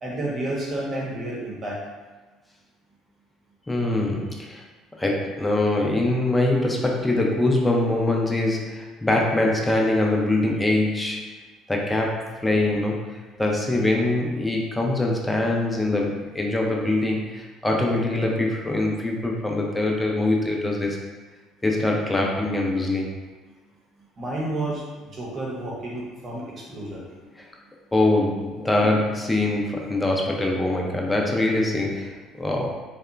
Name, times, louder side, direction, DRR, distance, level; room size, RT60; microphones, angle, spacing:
voice 1, 0.0-1.8 24.2-27.0, right 1 dB, 40° right, -4 dB, 0.9 m, -30 dB
voice 2, 3.7-4.6 4.9-11.3 11.7-21.0 21.6-23.1 27.4-27.5 27.9-32.7, left 2 dB, 15° left, -1 dB, 0.5 m, -23 dB
2.8 x 2.2 x 2.4 m, 1.3 s
hypercardioid pair, 65°, 0 cm